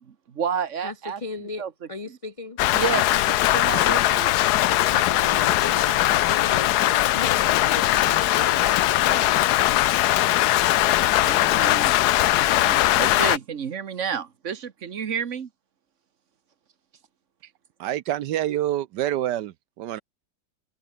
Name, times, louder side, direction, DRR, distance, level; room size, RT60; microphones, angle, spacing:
voice 1, 0.0-2.2 2.7-4.3 9.0-9.3 11.0-11.9 12.3-15.5, right 7 dB, 45° right, 1.3 m, -31 dB
voice 2, 1.2-1.6 1.9-2.6 4.8-9.2, left 3 dB, 40° left, 0.5 m, -36 dB
Rain, 2.6-13.4, left 15 dB, 70° left, 1.1 m, -20 dB
voice 3, 17.8-20.0, right 12 dB, 75° right, 1.3 m, -27 dB
omnidirectional pair, 1.9 m